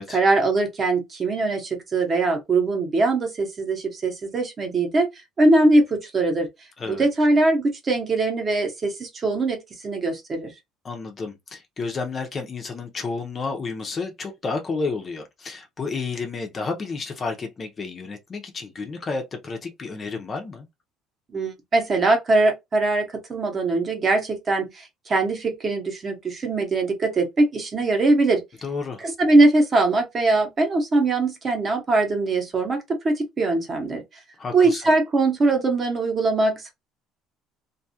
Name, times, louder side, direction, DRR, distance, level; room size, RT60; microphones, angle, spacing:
voice 1, 0.1-5.1 5.4-6.5 6.9-9.6 9.8-10.5 21.3-28.4 29.0-34.0 34.5-36.7, right 2 dB, 25° right, 0.8 m, -21 dB
voice 2, 6.8-7.1 10.8-20.7 28.6-29.1 34.4-34.8, left 4 dB, 25° left, 0.5 m, -31 dB
2.5 x 2.3 x 2.7 m
cardioid pair, 150°, 0 cm